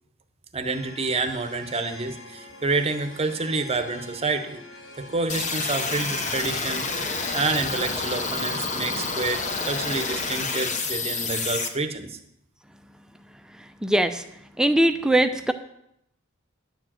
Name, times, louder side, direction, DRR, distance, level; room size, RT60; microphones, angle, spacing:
voice 1, 0.5-4.6 5.0-12.2, right 3 dB, 30° right, 8 dB, 0.8 m, -28 dB
sound 1, 0.6-11.7, left 1 dB, 70° left, 1.8 m, -46 dB
sound 2, 5.3-11.7, left 4 dB, 35° left, 0.9 m, -29 dB
voice 2, 13.5-14.2 14.6-15.5, right 1 dB, 5° right, 8 dB, 0.5 m, -21 dB
11.0 x 4.8 x 7.5 m, 0.77 s
head